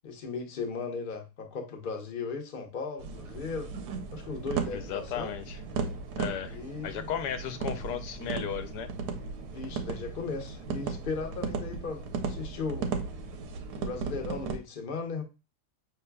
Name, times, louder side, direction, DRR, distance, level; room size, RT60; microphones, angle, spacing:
voice 1, 0.0-3.7 4.1-5.3 6.5-7.1 9.5-12.9 13.8-15.2, left 4 dB, 45° left, 4 dB, 0.8 m, -37 dB
sound 1, 3.0-14.6, right 5 dB, 80° right, 1.2 m, -36 dB
voice 2, 4.7-5.6 6.2-8.9, left 9 dB, 85° left, 9 dB, 1.2 m, -35 dB
5.7 x 3.2 x 2.2 m, 0.29 s
omnidirectional pair, 1.7 m